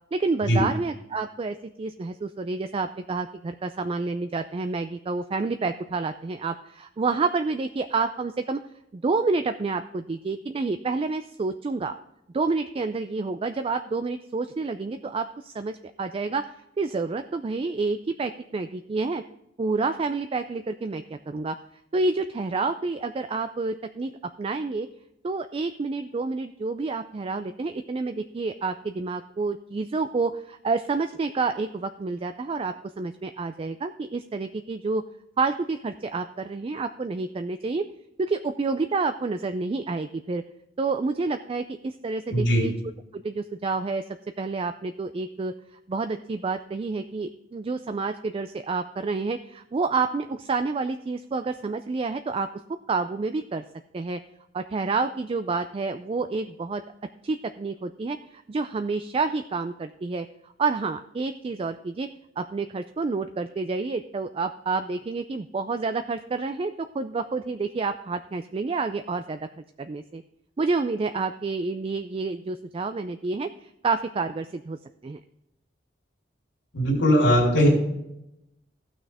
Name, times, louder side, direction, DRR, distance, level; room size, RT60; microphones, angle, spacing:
voice 1, 0.1-8.6 8.9-11.9 12.3-19.2 19.6-21.6 21.9-24.1 24.4-24.9 25.2-35.0 35.4-37.9 38.2-40.4 40.8-42.7 43.1-44.0 44.4-45.5 45.9-52.5 52.9-53.6 53.9-54.2 54.5-56.8 57.2-60.3 60.6-62.1 62.4-69.4 69.8-70.2 70.6-74.8 75.0-75.2, right 4 dB, 30° right, 9 dB, 0.3 m, -29 dB
voice 2, 42.3-42.6 76.7-77.7, equal, 90° left, -2 dB, 3.5 m, -19 dB
15.5 x 6.2 x 3.4 m, 0.85 s
head